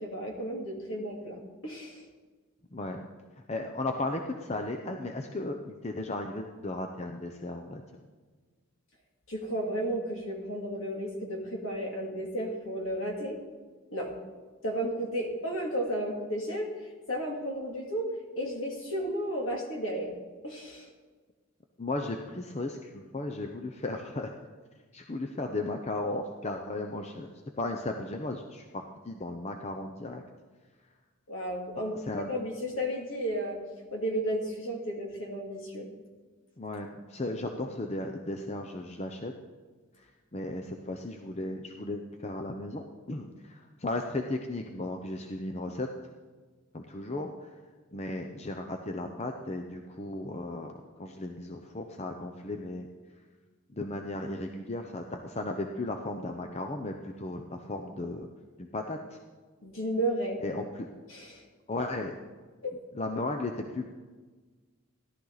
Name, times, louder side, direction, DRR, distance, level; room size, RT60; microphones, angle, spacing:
voice 1, 0.0-2.0 9.3-13.4 13.9-14.1 14.6-16.7 17.1-18.1 18.3-20.1 20.4-20.9 31.3-33.6 33.9-35.9 59.6-60.4 61.1-61.4 62.6-62.7, right 1 dB, 60° left, 0 dB, 2.6 m, -33 dB
voice 2, 2.7-3.1 3.5-7.8 21.8-24.3 24.9-27.3 27.6-30.2 31.8-32.3 36.6-39.3 40.0-45.9 46.7-47.5 47.9-52.9 53.7-58.3 58.6-59.2 60.4-60.9 61.7-62.2 62.9-63.9, left 2 dB, 30° left, 4 dB, 0.7 m, -35 dB
16.5 x 12.0 x 4.0 m, 1.4 s
head